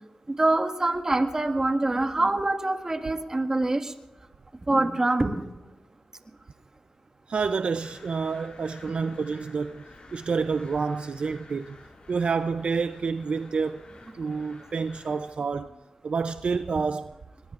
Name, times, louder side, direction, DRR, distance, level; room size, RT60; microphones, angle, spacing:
voice 1, 0.3-3.9 4.7-5.4 9.0-9.1, right 2 dB, 30° right, 1.8 m, -25 dB
voice 2, 7.3-11.8 12.1-13.8 14.1-15.7 16.0-17.1, right 5 dB, 65° right, 0.5 m, -28 dB
sound 1, 7.8-15.3, left 2 dB, 65° left, 5.2 m, -51 dB
24.5 x 20.5 x 2.5 m
cardioid pair, 65°, 2 cm